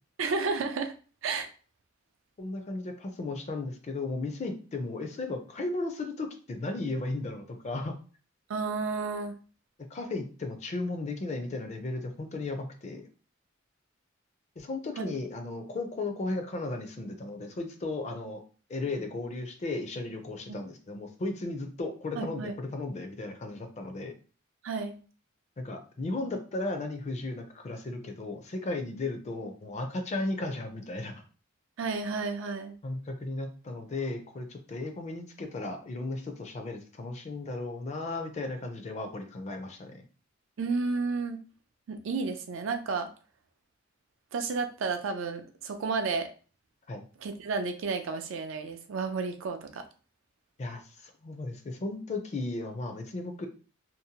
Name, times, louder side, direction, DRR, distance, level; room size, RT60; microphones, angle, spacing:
voice 1, 0.2-0.9 1.2-1.5 8.5-9.3 15.0-15.2 22.2-22.5 24.6-25.0 28.9-29.0 31.8-32.8 40.6-41.4 41.9-43.1 44.3-46.3 47.2-49.8, right 4 dB, 75° right, 6 dB, 0.4 m, -32 dB
voice 2, 2.4-8.0 9.9-13.0 14.6-18.4 18.7-24.1 25.6-31.2 32.8-40.0 46.9-47.0 50.6-50.8 51.2-53.5, left 2 dB, 35° left, 5 dB, 0.4 m, -35 dB
2.6 x 2.1 x 2.8 m, 0.38 s
head